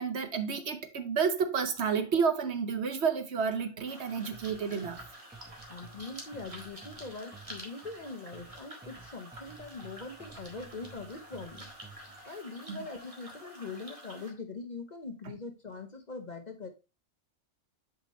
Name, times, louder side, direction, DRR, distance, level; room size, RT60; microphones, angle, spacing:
voice 1, 0.0-5.0 12.7-12.8 15.2-15.3, right 6 dB, 65° right, 1.1 m, -30 dB
sound 1, 3.9-14.3, equal, 30° right, 1.7 m, -49 dB
sound 2, 4.3-12.2, right 4 dB, 10° right, 0.6 m, -53 dB
voice 2, 5.7-11.7 12.2-16.7, left 3 dB, 40° left, 0.9 m, -42 dB
8.0 x 5.1 x 3.0 m
omnidirectional pair, 1.3 m